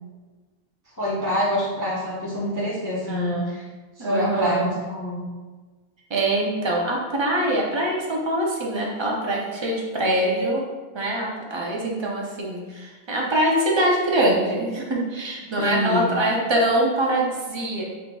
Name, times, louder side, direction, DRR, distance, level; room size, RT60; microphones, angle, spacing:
voice 1, 1.0-3.6 4.0-5.2 15.6-16.1, equal, 20° left, -9 dB, 0.7 m, -26 dB
voice 2, 3.1-3.5 4.0-4.7 6.1-10.6 10.9-17.8, right 1 dB, 35° right, -2 dB, 0.5 m, -24 dB
4.0 x 3.9 x 2.3 m, 1.3 s
omnidirectional pair, 1.2 m